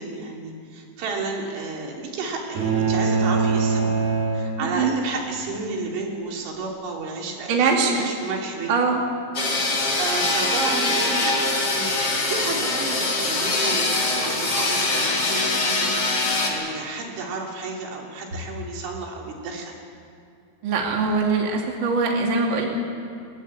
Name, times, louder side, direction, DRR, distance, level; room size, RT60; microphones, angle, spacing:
voice 1, 0.0-3.9 4.3-8.9 10.0-19.7, right 3 dB, 80° right, -1 dB, 5.1 m, -32 dB
sound 1, 2.6-5.1, right 4 dB, 60° right, 4.3 m, -23 dB
voice 2, 7.5-8.1 8.7-9.0 20.6-22.7, right 4 dB, 35° right, 0 dB, 2.2 m, -22 dB
sound 2, 9.3-16.5, left 2 dB, 30° left, 2.1 m, -23 dB
28.0 x 12.5 x 8.6 m, 2.5 s
omnidirectional pair, 5.3 m